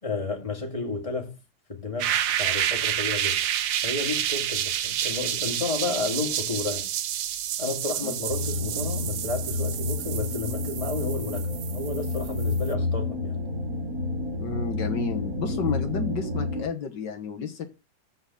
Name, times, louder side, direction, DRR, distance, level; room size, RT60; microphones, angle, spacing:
voice 1, 0.0-1.4 1.7-3.4 3.8-6.9 7.6-13.5, left 3 dB, 20° left, 2.3 m, -32 dB
sound 1, 2.0-12.7, right 11 dB, 80° right, 1.5 m, -29 dB
sound 2, 8.3-16.6, left 2 dB, 50° right, 1.8 m, -30 dB
voice 2, 14.4-17.7, left 6 dB, 70° left, 1.9 m, -31 dB
7.8 x 5.8 x 6.9 m
omnidirectional pair, 2.0 m